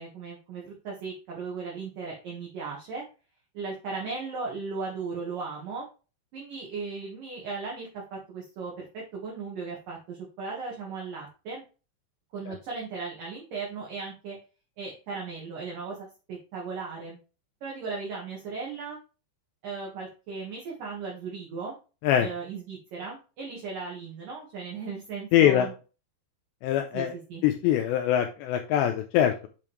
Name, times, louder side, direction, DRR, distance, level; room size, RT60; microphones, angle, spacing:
voice 1, 0.0-3.0 3.5-5.9 6.3-11.6 12.3-14.4 14.8-17.2 17.6-19.0 19.6-21.8 22.2-25.7 26.9-27.4, right 4 dB, 60° right, -3 dB, 2.7 m, -37 dB
voice 2, 25.3-25.7 26.6-27.1 27.4-29.5, left 11 dB, 80° left, 4 dB, 2.7 m, -23 dB
7.6 x 5.4 x 3.2 m, 0.33 s
omnidirectional pair, 5.4 m